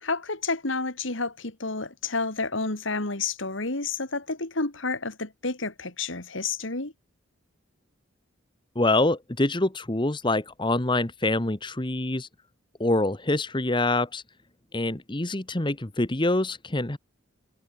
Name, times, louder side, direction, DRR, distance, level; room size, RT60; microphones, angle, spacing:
voice 1, 0.0-6.9, left 3 dB, 70° left, 2.8 m, -30 dB
voice 2, 8.7-12.3 12.8-14.2 14.7-17.0, left 2 dB, 25° left, 1.2 m, -25 dB
head